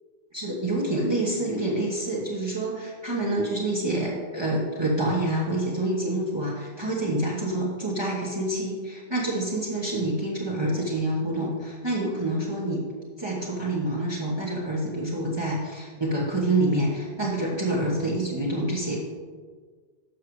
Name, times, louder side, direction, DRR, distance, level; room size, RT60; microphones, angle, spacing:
voice 1, 0.3-12.8 13.2-19.0, right 1 dB, 25° right, -6 dB, 1.2 m, -27 dB
11.5 x 6.6 x 3.1 m, 1.5 s
omnidirectional pair, 1.0 m